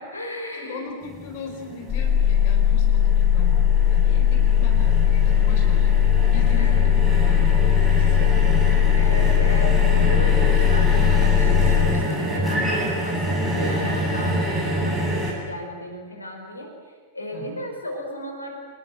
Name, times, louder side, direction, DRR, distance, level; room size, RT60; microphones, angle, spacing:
voice 1, 0.0-0.9 5.7-6.0 6.5-6.8 9.0-18.6, equal, 80° left, 3 dB, 4.6 m, -35 dB
voice 2, 0.5-6.0 6.3-9.4 17.3-17.6, left 3 dB, 50° left, 3 dB, 4.3 m, -39 dB
sound 1, 1.0-15.3, right 1 dB, 10° right, 7.8 m, -27 dB
sound 2, 1.9-11.9, left 9 dB, 25° left, 3.0 m, -18 dB
26.0 x 21.0 x 8.1 m, 1.5 s
figure-of-eight pair, 90°, 0 cm